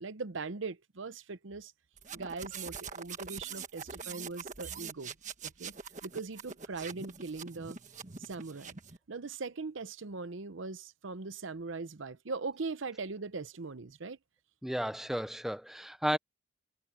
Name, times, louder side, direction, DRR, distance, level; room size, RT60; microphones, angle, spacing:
voice 1, 0.0-1.7 2.1-5.2 5.4-5.7 6.0-7.8 8.2-8.8 9.1-14.2, right 4 dB, 75° right, 0.8 m, -40 dB
sound 1, 2.0-9.0, right 6 dB, 40° right, 1.4 m, -44 dB
voice 2, 14.6-16.2, equal, ahead, 0.5 m, -33 dB
head